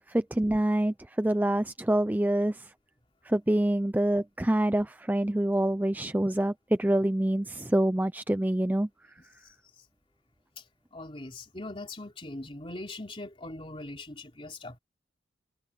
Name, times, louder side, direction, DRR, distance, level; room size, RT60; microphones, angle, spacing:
voice 1, 0.1-2.7 3.3-8.9, right 1 dB, 10° right, 0.4 m, -26 dB
voice 2, 9.2-9.5 10.6-10.7 10.9-14.8, left 2 dB, 30° left, 3.3 m, -41 dB
head